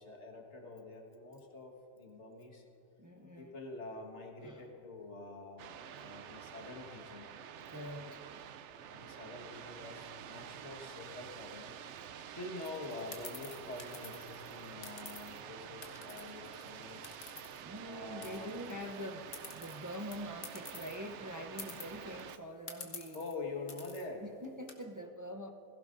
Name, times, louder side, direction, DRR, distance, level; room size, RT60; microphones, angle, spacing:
voice 1, 0.0-2.6 3.4-7.3 8.9-11.7 12.3-17.0 17.8-18.5 23.1-24.3, left 2 dB, 85° left, 1 dB, 1.9 m, -46 dB
voice 2, 3.0-3.5 4.4-4.7 7.7-8.2 10.4-10.5 17.6-23.2 24.2-25.5, equal, 20° right, 2 dB, 0.6 m, -45 dB
sound 1, 5.6-22.4, right 8 dB, 85° right, 0.9 m, -48 dB
sound 2, 12.6-15.4 15.8-17.9 18.2-21.0 21.3-21.4 21.6-22.2 22.7-23.3 23.7-24.1 24.4-24.7, left 4 dB, 55° left, 1.4 m, -50 dB
22.0 x 16.0 x 2.6 m, 2.9 s
omnidirectional pair, 1.2 m